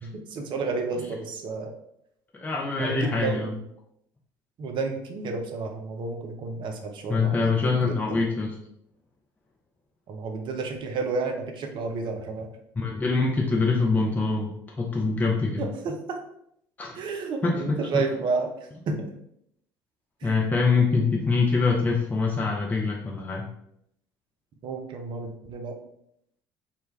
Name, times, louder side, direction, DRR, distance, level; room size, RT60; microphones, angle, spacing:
voice 1, 0.0-1.7 2.8-3.5 4.6-8.0 10.1-12.5 15.6-16.2 16.9-18.5 18.9-19.1 20.2-20.5 24.6-25.7, right 4 dB, 45° right, 4 dB, 0.5 m, -31 dB
voice 2, 2.3-3.6 7.1-8.5 12.8-15.7 16.8-17.0 17.4-18.0 20.2-23.4, left 4 dB, 15° left, -2 dB, 0.5 m, -24 dB
2.2 x 2.1 x 3.2 m, 0.74 s
figure-of-eight pair, 60°, 12 cm